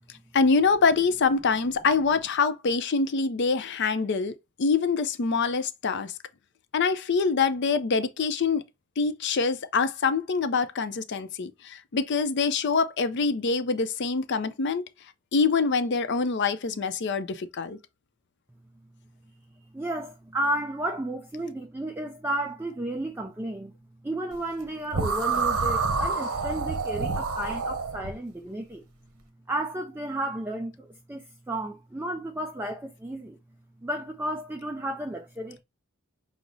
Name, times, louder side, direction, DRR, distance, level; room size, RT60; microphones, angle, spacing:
voice 1, 0.3-4.3 4.6-6.1 6.7-8.6 9.0-14.8 15.3-17.8, left 4 dB, 55° left, 0.5 m, -25 dB
voice 2, 19.7-23.7 24.0-28.8 29.5-33.4 33.8-35.6, right 1 dB, 10° right, 0.4 m, -33 dB
sound 1, 24.9-28.1, right 4 dB, 85° right, 0.9 m, -27 dB
6.0 x 2.0 x 3.8 m
head